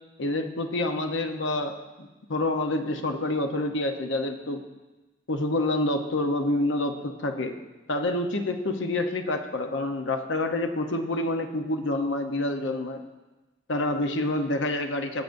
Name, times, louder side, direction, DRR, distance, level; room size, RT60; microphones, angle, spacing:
voice 1, 0.2-4.6 5.3-7.6 7.9-13.0 13.7-15.2, left 2 dB, 70° left, 5 dB, 0.8 m, -27 dB
16.5 x 7.7 x 2.6 m, 1.1 s
head